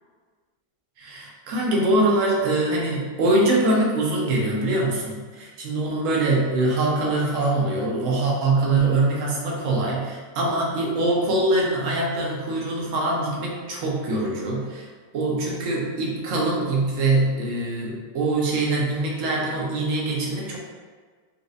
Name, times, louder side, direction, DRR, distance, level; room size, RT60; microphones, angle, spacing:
voice 1, 1.0-14.9 15.1-20.6, right 2 dB, 60° right, -3 dB, 1.1 m, -23 dB
4.1 x 2.6 x 2.4 m, 1.5 s
omnidirectional pair, 1.7 m